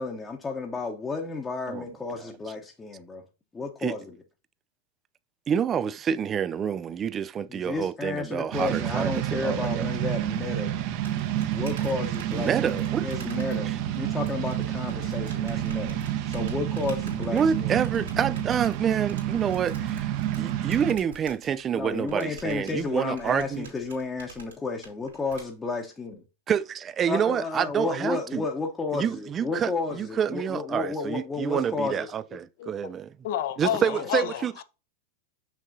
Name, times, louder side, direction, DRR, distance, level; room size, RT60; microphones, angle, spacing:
voice 1, 0.0-3.2 3.5-4.2 7.5-10.7 11.5-16.0 16.3-17.8 21.7-26.2 27.1-32.1 33.9-34.1, left 4 dB, 15° left, 0.9 m, -32 dB
voice 2, 5.5-9.8 12.4-13.1 13.7-13.8 17.3-20.1 20.4-23.7 26.5-28.4 28.9-29.7 30.0-33.1 33.6-34.5, right 8 dB, 30° right, 0.3 m, -28 dB
sound 1, 8.5-20.9, right 11 dB, 50° right, 0.8 m, -29 dB
sound 2, 10.4-25.4, right 5 dB, 80° right, 2.8 m, -48 dB
voice 3, 32.6-32.9 33.2-34.6, left 11 dB, 60° left, 0.7 m, -30 dB
6.4 x 6.1 x 2.7 m
figure-of-eight pair, 90°, 0 cm